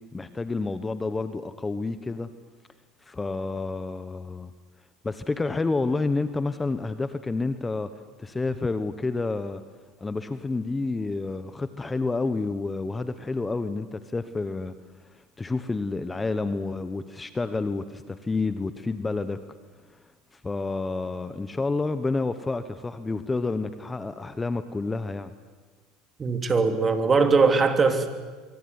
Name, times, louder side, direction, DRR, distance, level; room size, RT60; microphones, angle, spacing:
voice 1, 0.1-2.3 3.0-4.5 5.0-7.9 8.2-9.6 10.0-14.7 15.0-19.4 19.9-25.3, left 3 dB, 15° left, 12 dB, 1.1 m, -29 dB
voice 2, 26.2-28.1, right 4 dB, 25° right, 7 dB, 3.1 m, -21 dB
25.0 x 24.0 x 9.7 m, 1.4 s
supercardioid pair, 115°, 0 cm